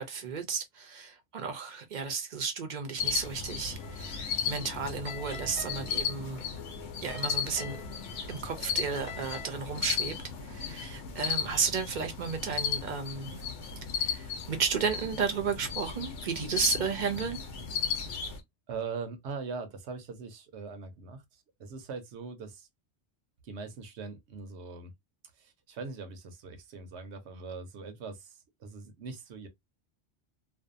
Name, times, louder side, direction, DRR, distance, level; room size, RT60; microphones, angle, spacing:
voice 1, 0.0-6.4 7.0-7.8 8.3-13.7 14.0-17.4, right 6 dB, 55° right, 0.6 m, -33 dB
sound 1, 3.0-18.4, left 7 dB, 90° left, 0.9 m, -35 dB
sound 2, 3.8-9.5, left 4 dB, 40° left, 0.7 m, -47 dB
voice 2, 18.7-22.7 23.4-24.9 25.3-29.5, right 4 dB, 80° right, 0.9 m, -41 dB
2.6 x 2.2 x 2.5 m
omnidirectional pair, 1.2 m